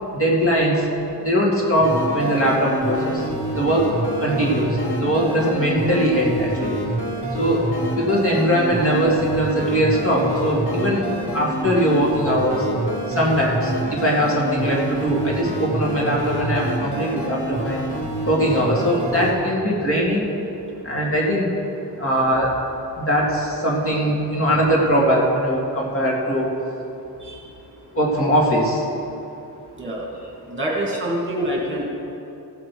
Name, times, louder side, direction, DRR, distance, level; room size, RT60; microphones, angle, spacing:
voice 1, 0.2-0.9 1.2-3.3 3.5-3.9 4.2-6.8 7.4-7.6 7.9-11.1 11.3-12.7 13.1-17.8 18.2-20.3 20.8-21.5 21.9-22.5 23.0-26.5 27.9-28.9, equal, 35° left, -4 dB, 2.1 m, -20 dB
sound 1, 1.8-19.3, right 1 dB, 80° left, 2.0 m, -27 dB
voice 2, 29.8-30.1 30.5-31.8, right 1 dB, 30° right, -3 dB, 2.2 m, -25 dB
16.5 x 7.5 x 4.6 m, 2.8 s
wide cardioid pair, 150°, 40 cm